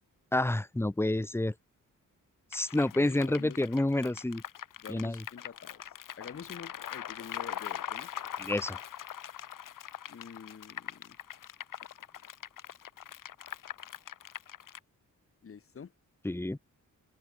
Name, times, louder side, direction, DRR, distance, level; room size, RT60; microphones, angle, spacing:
voice 1, 0.3-1.5 2.5-4.4 4.9-5.2 8.4-8.8 16.2-16.6, left 1 dB, 10° left, 1.1 m, -29 dB
sound 1, 2.5-14.8, left 10 dB, 80° left, 2.1 m, -42 dB
voice 2, 2.9-3.6 4.8-5.8 6.2-8.1 10.1-11.2 15.4-15.9, left 6 dB, 45° left, 1.6 m, -47 dB
cardioid pair, 105°, 32 cm